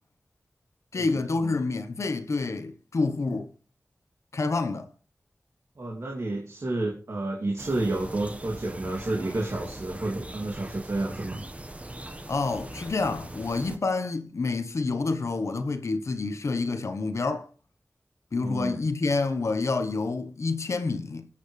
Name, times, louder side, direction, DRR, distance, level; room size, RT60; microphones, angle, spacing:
voice 1, 0.9-3.5 4.3-4.9 12.3-17.5 18.3-21.3, left 3 dB, 85° left, 1.1 m, -28 dB
voice 2, 5.8-11.4 18.4-18.8, right 2 dB, 70° right, 2.7 m, -30 dB
sound 1, 7.6-13.8, right 1 dB, 25° right, 1.4 m, -41 dB
21.5 x 8.9 x 3.3 m
wide cardioid pair, 75°, 5 cm